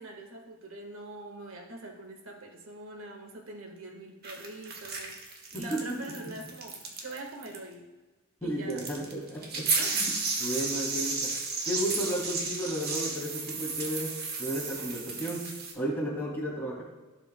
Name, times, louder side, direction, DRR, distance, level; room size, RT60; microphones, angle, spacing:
voice 1, 0.0-5.2 5.5-7.9 8.4-8.8 9.7-10.0, right 2 dB, 70° right, 2 dB, 1.6 m, -43 dB
sound 1, 4.2-7.2 7.4-7.6 8.7-15.7, right 4 dB, 45° right, 1.5 m, -33 dB
voice 2, 5.5-6.0 8.4-10.1 10.4-11.4 11.6-16.8, right 1 dB, 10° left, -5 dB, 2.7 m, -33 dB
16.5 x 6.8 x 2.3 m, 1.2 s
head